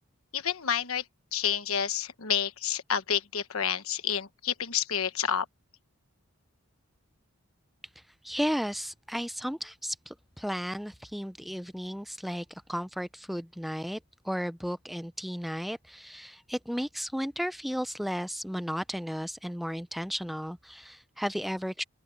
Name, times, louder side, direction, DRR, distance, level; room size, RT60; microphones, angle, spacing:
voice 1, 0.3-1.0 1.3-5.4, left 8 dB, 80° left, 1.2 m, -29 dB
voice 2, 8.2-21.8, equal, ahead, 0.4 m, -34 dB
open air
head